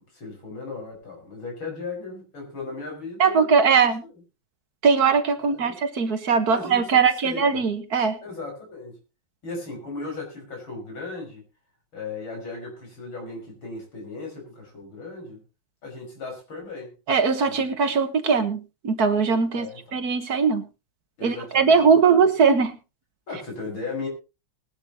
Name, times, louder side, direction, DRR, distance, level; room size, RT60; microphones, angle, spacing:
voice 1, 0.1-3.9 5.4-5.8 6.5-7.6 8.2-9.0 9.4-11.4 11.9-15.4 15.8-16.9 17.5-17.8 19.5-20.0 21.2-22.2 23.3-24.1, left 3 dB, 85° left, 1 dB, 6.2 m, -36 dB
voice 2, 3.2-4.0 4.8-8.2 17.1-20.6 21.2-22.8, right 5 dB, 55° right, 9 dB, 1.7 m, -20 dB
20.0 x 11.5 x 2.9 m, 0.29 s
omnidirectional pair, 2.1 m